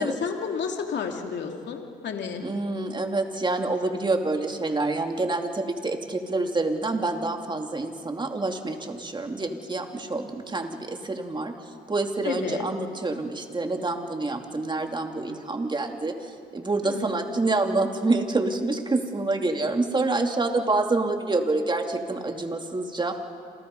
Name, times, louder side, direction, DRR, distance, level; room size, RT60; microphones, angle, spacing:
voice 1, 0.0-2.4 12.2-12.6 16.8-17.2, left 6 dB, 65° left, 3 dB, 2.8 m, -31 dB
voice 2, 2.4-11.5 11.9-16.1 16.5-23.1, right 2 dB, 25° right, 4 dB, 2.7 m, -27 dB
29.0 x 27.5 x 5.5 m, 2.3 s
cardioid pair, 90°, 20 cm